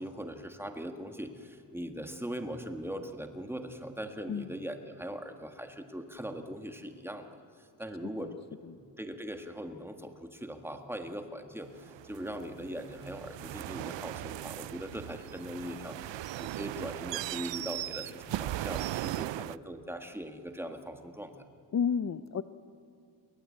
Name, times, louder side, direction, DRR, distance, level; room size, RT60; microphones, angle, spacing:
voice 1, 0.0-7.3 7.6-8.3 8.8-16.0 16.4-21.4, equal, 5° right, 6 dB, 1.6 m, -40 dB
sound 1, 11.8-19.6, right 15 dB, 85° right, 0.6 m, -38 dB
voice 2, 21.7-22.4, left 7 dB, 40° left, 12 dB, 0.6 m, -31 dB
28.5 x 23.0 x 8.6 m, 2.4 s
wide cardioid pair, 175°, 42 cm